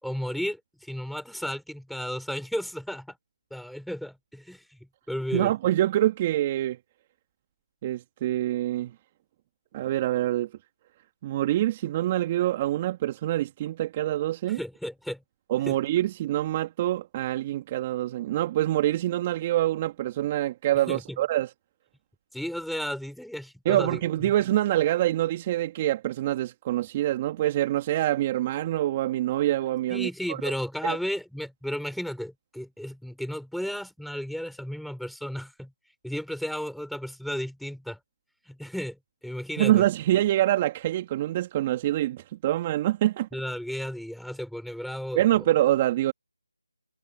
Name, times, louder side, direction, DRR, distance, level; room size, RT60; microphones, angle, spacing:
voice 1, 0.0-3.2 3.5-4.6 5.1-5.5 14.5-15.2 15.7-15.8 20.9-21.2 22.3-24.3 29.9-35.7 36.0-38.0 38.5-39.8 43.3-45.4, equal, ahead, 4.6 m, -34 dB
voice 2, 5.3-6.8 7.8-8.9 9.7-10.5 11.2-14.6 15.5-21.5 23.7-30.4 30.8-31.0 39.6-43.3 45.2-46.1, right 14 dB, 20° right, 1.8 m, -25 dB
figure-of-eight pair, 160°, 0 cm